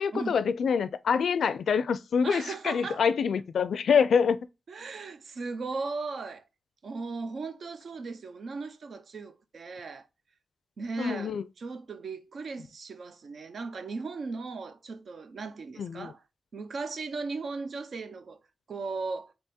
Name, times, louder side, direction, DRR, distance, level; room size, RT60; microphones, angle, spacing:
voice 1, 0.0-4.4 11.0-11.4 15.8-16.1, left 6 dB, 80° left, 0.4 m, -26 dB
voice 2, 2.2-3.0 4.7-6.4 6.8-10.1 10.8-16.2 16.5-18.4 18.7-19.3, right 4 dB, 65° right, 0.6 m, -37 dB
3.5 x 3.3 x 4.2 m
cardioid pair, 90°, 0 cm